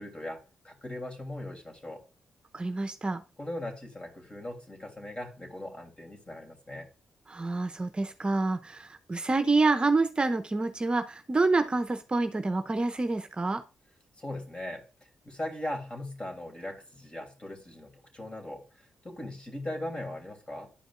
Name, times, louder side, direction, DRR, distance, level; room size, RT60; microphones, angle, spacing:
voice 1, 0.0-2.0 3.4-6.9 14.2-20.7, left 1 dB, 35° left, 2 dB, 3.0 m, -39 dB
voice 2, 2.5-3.2 7.3-13.6, right 3 dB, 30° right, 7 dB, 0.8 m, -27 dB
11.5 x 5.1 x 2.5 m, 0.32 s
hypercardioid pair, 45°, 3 cm